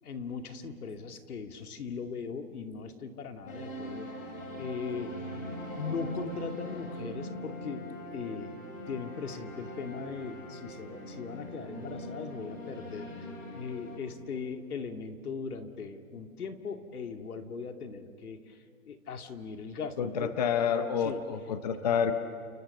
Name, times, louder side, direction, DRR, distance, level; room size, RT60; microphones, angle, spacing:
voice 1, 0.0-4.1 4.6-5.3 5.8-8.6 8.9-13.1 13.5-18.6 18.9-20.3 21.0-21.2 21.7-21.8, left 5 dB, 80° left, 5 dB, 2.5 m, -39 dB
sound 1, 3.5-14.0, equal, 60° left, 7.6 m, -41 dB
voice 2, 20.0-22.1, left 7 dB, 30° left, 9 dB, 0.8 m, -28 dB
30.0 x 29.0 x 6.7 m, 2.2 s
hypercardioid pair, 175°, 44 cm